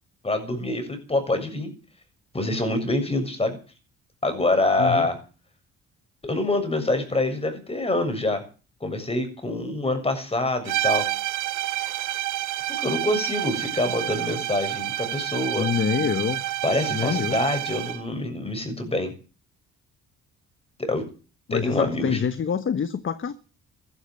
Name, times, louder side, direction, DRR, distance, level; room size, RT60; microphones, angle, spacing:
voice 1, 0.2-1.7 2.3-3.6 4.2-5.2 6.2-8.4 8.8-11.1 12.8-15.7 16.6-19.1 20.8-21.0 21.5-22.2, left 2 dB, 20° left, 7.2 m, -25 dB
sound 1, 10.7-18.1, right 15 dB, 80° right, 1.0 m, -29 dB
voice 2, 15.6-16.4 16.9-17.4 21.5-23.3, left 7 dB, 40° left, 1.3 m, -26 dB
14.5 x 12.5 x 7.8 m
cardioid pair, 90°, 30 cm